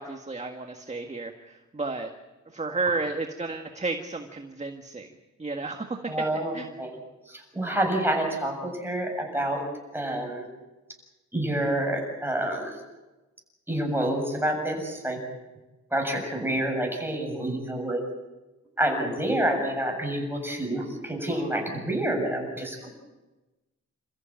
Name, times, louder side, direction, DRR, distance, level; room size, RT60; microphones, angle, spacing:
voice 1, 0.0-2.1 2.5-5.1 5.4-6.0 6.5-6.7, right 3 dB, 25° right, 4 dB, 1.8 m, -32 dB
voice 2, 6.1-6.5 6.8-6.9 7.3-9.6 9.9-10.4 11.3-12.8 13.7-15.2 15.9-18.0 18.8-22.9, right 1 dB, 10° right, 1 dB, 7.5 m, -28 dB
29.0 x 14.5 x 9.0 m, 1.1 s
wide cardioid pair, 100°, 29 cm